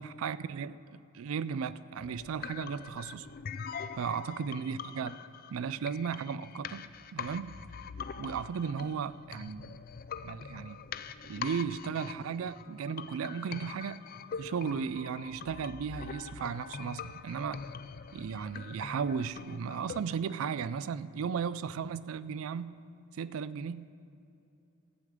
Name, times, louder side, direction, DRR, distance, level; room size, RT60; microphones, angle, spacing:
voice 1, 0.0-3.3 4.0-5.2 5.5-6.8 7.1-7.6 8.2-9.7 10.2-10.8 11.2-14.0 14.4-17.6 18.1-22.7 23.2-23.9, right 6 dB, 85° right, 16 dB, 0.4 m, -35 dB
sound 1, 2.0-20.0, left 6 dB, 45° left, 0.3 m, -43 dB
14.0 x 5.0 x 8.6 m, 2.8 s
head